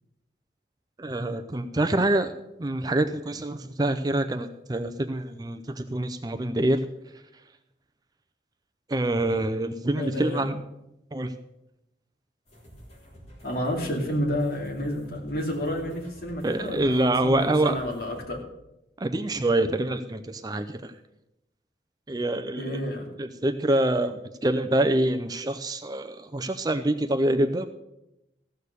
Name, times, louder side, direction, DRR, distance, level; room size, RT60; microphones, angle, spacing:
voice 1, 1.0-2.3 2.6-6.8 8.9-10.5 11.1-11.3 16.4-17.8 19.0-20.9 22.1-22.8 23.2-27.7, right 1 dB, 20° right, 10 dB, 0.4 m, -26 dB
voice 2, 9.9-10.5 13.4-18.4 22.6-23.1, equal, 55° left, 0 dB, 2.5 m, -30 dB
sound 1, 12.5-18.3, equal, 35° left, 3.5 m, -50 dB
15.0 x 6.6 x 6.7 m, 0.89 s
head